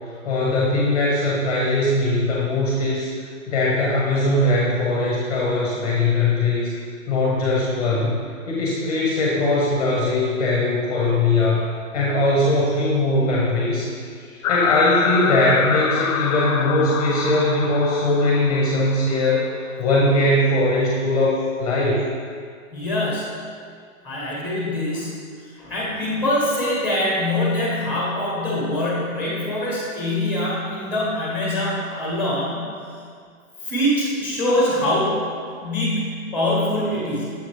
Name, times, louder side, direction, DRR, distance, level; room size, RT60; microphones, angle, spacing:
voice 1, 0.2-3.1 3.5-6.7 7.1-8.1 8.5-13.9 14.5-19.5 19.8-22.1, left 2 dB, 30° left, -4 dB, 0.8 m, -20 dB
sound 1, 14.4-19.2, left 6 dB, 80° left, 0.6 m, -25 dB
voice 2, 22.7-23.3 24.0-25.1 25.5-32.7 33.6-35.2 35.6-37.2, left 1 dB, 5° right, -6 dB, 1.1 m, -23 dB
7.0 x 5.3 x 3.2 m, 2.2 s
hypercardioid pair, 165°, 41 cm